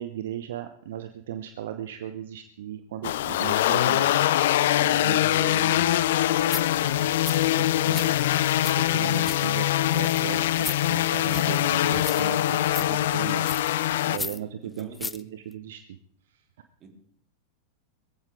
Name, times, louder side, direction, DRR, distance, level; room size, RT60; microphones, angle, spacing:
voice 1, 0.0-4.1 4.8-6.0 6.7-8.2 8.7-9.7 9.9-13.7 14.1-16.0 16.3-16.4, right 10 dB, 60° right, 10 dB, 0.9 m, -37 dB
sound 1, 3.0-14.2, left 13 dB, 55° left, 0.5 m, -23 dB
sound 2, 6.1-13.8, right 1 dB, 80° right, 5.7 m, -49 dB
sound 3, 6.5-6.6 7.2-7.4 7.9-8.7 9.0-9.4 9.9-10.2 10.6-10.8 11.3-11.6 12.0-12.4 12.7-12.9 13.4-13.7 14.1-14.4 14.8-15.2 15.5-15.6, left 3 dB, 10° left, 0.6 m, -36 dB
voice 2, 13.9-15.1 16.8-16.9, right 3 dB, 30° right, 3 dB, 3.8 m, -49 dB
21.5 x 15.0 x 3.8 m, 0.63 s
figure-of-eight pair, 90°, 0 cm